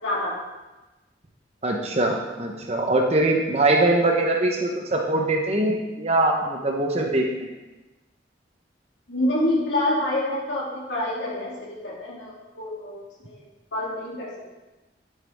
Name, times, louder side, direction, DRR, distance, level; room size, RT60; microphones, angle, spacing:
voice 1, 0.0-0.4 9.1-13.4 13.7-14.4, left 1 dB, 85° left, -6 dB, 2.6 m, -27 dB
voice 2, 1.6-7.5, right 2 dB, 35° right, 1 dB, 0.9 m, -22 dB
9.3 x 9.3 x 3.5 m, 1.1 s
head